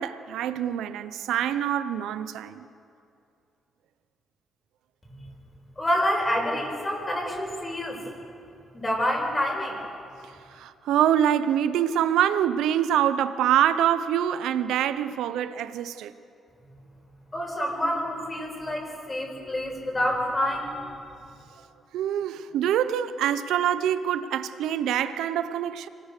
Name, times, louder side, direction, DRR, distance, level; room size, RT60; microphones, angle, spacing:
voice 1, 0.0-2.6 10.5-16.1 21.9-25.9, right 10 dB, 85° right, 0.8 m, -25 dB
voice 2, 5.8-8.0 8.7-9.8 17.3-20.7, equal, 25° left, 7.1 m, -27 dB
26.0 x 19.5 x 6.7 m
supercardioid pair, 65°, 0 cm